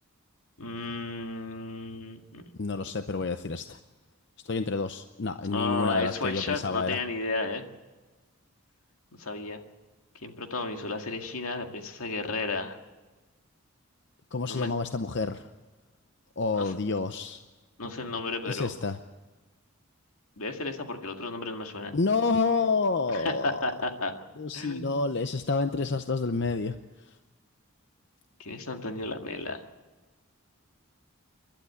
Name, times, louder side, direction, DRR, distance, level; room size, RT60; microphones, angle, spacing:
voice 1, 0.6-2.4 5.5-7.6 9.2-9.6 10.2-12.8 14.5-14.7 16.6-16.8 17.8-18.7 20.4-22.0 23.1-24.1 24.5-25.1 28.4-29.6, left 3 dB, 80° left, 4 dB, 2.0 m, -33 dB
voice 2, 2.6-3.8 4.5-7.0 14.3-15.5 16.4-17.4 18.5-19.0 21.9-23.6 24.4-26.8 27.0-27.1, left 4 dB, 50° left, 9 dB, 0.7 m, -29 dB
28.5 x 12.0 x 8.5 m, 1.2 s
head